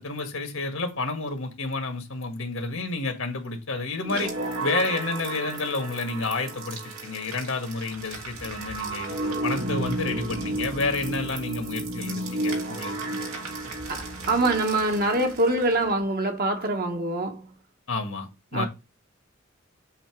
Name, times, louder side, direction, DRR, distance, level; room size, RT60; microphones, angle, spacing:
voice 1, 0.0-4.3 4.6-13.3 17.9-18.7, left 3 dB, 85° left, 1.8 m, -30 dB
sound 1, 4.0-15.9, right 2 dB, 85° right, 2.1 m, -33 dB
voice 2, 13.9-17.5 18.5-18.7, right 2 dB, 50° right, 1.1 m, -25 dB
7.8 x 2.8 x 4.6 m
head